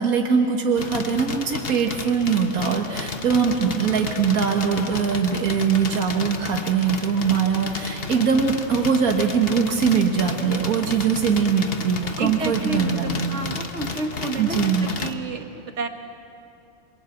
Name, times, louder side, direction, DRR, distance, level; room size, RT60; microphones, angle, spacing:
voice 1, 0.0-13.6 14.4-14.9, right 6 dB, 80° right, 2 dB, 1.9 m, -22 dB
sound 1, 0.8-15.1, left 4 dB, 45° left, 1.4 m, -32 dB
voice 2, 12.2-15.9, right 3 dB, 55° right, 4 dB, 2.0 m, -30 dB
27.0 x 22.5 x 7.9 m, 2.7 s
omnidirectional pair, 1.5 m